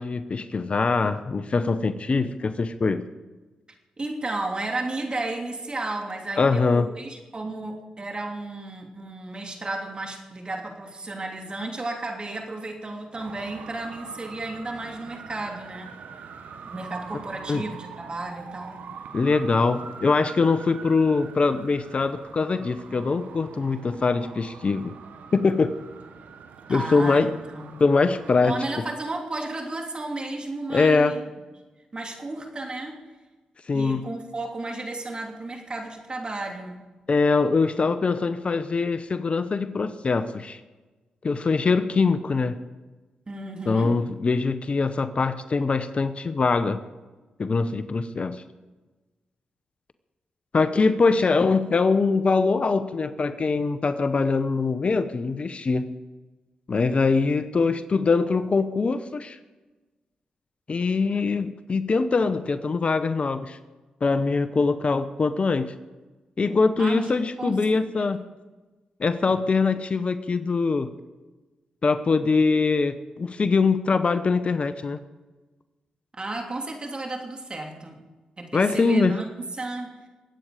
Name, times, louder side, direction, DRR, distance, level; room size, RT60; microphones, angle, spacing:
voice 1, 0.0-3.0 6.4-6.9 17.5-17.6 19.1-24.9 25.3-25.7 26.7-27.3 27.8-28.6 30.7-31.2 33.7-34.1 37.1-40.6 41.2-42.6 43.7-46.8 47.4-48.4 50.5-55.9 56.7-59.4 60.7-63.6 64.0-65.7 66.4-68.2 69.0-70.9 71.8-75.0 78.5-79.2, left 4 dB, 45° left, 12 dB, 0.9 m, -23 dB
voice 2, 4.0-15.9 16.6-18.8 26.7-27.8 28.4-31.2 31.9-33.0 33.7-36.8 43.3-43.9 66.8-67.1 67.4-68.1 76.1-78.0 78.4-79.9, right 2 dB, 35° right, 2 dB, 3.0 m, -33 dB
Traffic noise roadway noise, 13.1-28.7, right 6 dB, 75° right, 1.1 m, -43 dB
22.0 x 8.9 x 5.0 m, 1.2 s
supercardioid pair, 50°, 3 cm